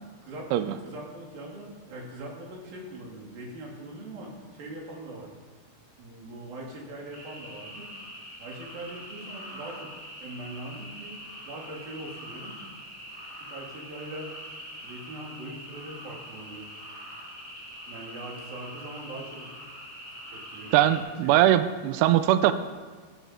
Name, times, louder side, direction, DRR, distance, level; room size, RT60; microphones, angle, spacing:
voice 1, 0.2-5.3 6.0-7.9 8.4-9.9 10.2-12.7 13.4-14.3 14.8-16.7 17.9-19.7 20.3-21.6, right 1 dB, 55° right, -2 dB, 3.9 m, -41 dB
sound 1, 7.1-21.0, equal, 10° right, 2.4 m, -43 dB
voice 2, 20.7-22.5, right 13 dB, 85° right, 11 dB, 2.3 m, -21 dB
15.0 x 13.0 x 4.3 m, 1.5 s
omnidirectional pair, 5.3 m